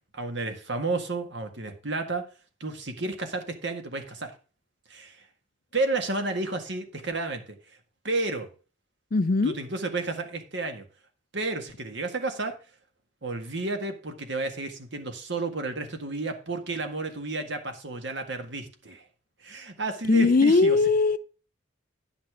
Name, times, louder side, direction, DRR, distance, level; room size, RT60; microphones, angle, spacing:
voice 1, 0.1-2.3 2.6-4.3 4.9-5.3 5.7-7.6 8.0-8.5 9.4-10.9 11.3-12.6 13.2-19.1 19.4-20.8, right 2 dB, 60° right, 1.8 m, -31 dB
voice 2, 9.1-9.5 20.1-21.2, left 3 dB, 45° left, 0.5 m, -20 dB
10.5 x 5.9 x 4.9 m
head